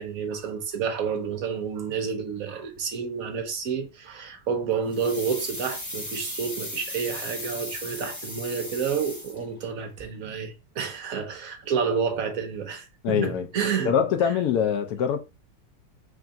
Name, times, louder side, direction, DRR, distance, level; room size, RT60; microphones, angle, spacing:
voice 1, 0.0-13.9 14.2-14.3, right 6 dB, 60° right, 1.0 m, -30 dB
sound 1, 4.9-9.7 10.0-10.1, left 1 dB, 15° left, 0.6 m, -36 dB
voice 2, 13.0-13.5 13.9-15.2, left 8 dB, 70° left, 0.9 m, -23 dB
3.4 x 2.4 x 3.8 m
omnidirectional pair, 2.0 m